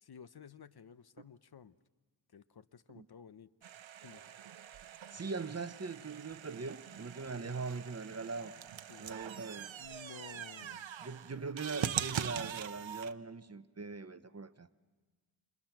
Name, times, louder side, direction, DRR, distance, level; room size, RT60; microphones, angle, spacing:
voice 1, 0.0-1.8 2.3-3.5 4.0-4.2 7.3-7.5 8.9-9.1 9.8-10.9, left 7 dB, 55° left, 0.7 m, -54 dB
sound 1, 3.6-13.1, right 9 dB, 80° right, 0.8 m, -42 dB
voice 2, 5.1-8.5 9.0-9.7 11.0-14.7, right 4 dB, 35° right, 0.9 m, -41 dB
29.5 x 27.0 x 5.9 m
wide cardioid pair, 100°, 46 cm